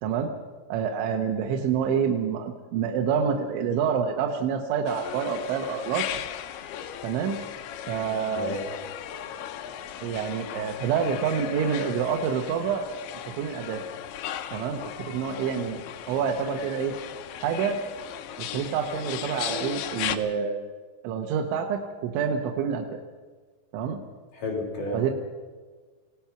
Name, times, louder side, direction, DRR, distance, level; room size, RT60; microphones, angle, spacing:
voice 1, 0.7-6.1 7.0-7.4 7.9-8.6 10.0-12.9 13.3-13.8 14.5-14.8 15.1-15.8 16.1-17.0 17.4-17.8 18.4-20.6 21.0-23.0 23.7-24.0 24.9-25.1, right 7 dB, 90° right, 2 dB, 3.5 m, -27 dB
sound 1, 4.9-20.2, left 10 dB, 75° left, 2.7 m, -37 dB
voice 2, 8.3-8.7 24.3-25.1, left 2 dB, 50° left, 0 dB, 5.0 m, -31 dB
27.0 x 17.0 x 5.9 m, 1.4 s
omnidirectional pair, 5.2 m